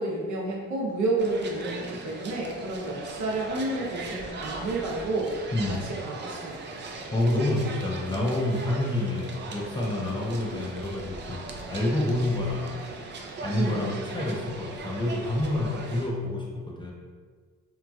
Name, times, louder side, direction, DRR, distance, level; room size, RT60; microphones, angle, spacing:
voice 1, 0.0-5.4 5.7-5.8 6.0-6.9 13.5-13.8, right 2 dB, 70° right, -2 dB, 0.8 m, -30 dB
sound 1, 1.2-16.1, right 3 dB, 40° right, 0.4 m, -39 dB
voice 2, 5.5-5.9 7.1-12.8 13.4-16.9, left 1 dB, 15° left, -3 dB, 0.5 m, -28 dB
3.0 x 2.5 x 2.2 m, 1.5 s
cardioid pair, 90°, 30 cm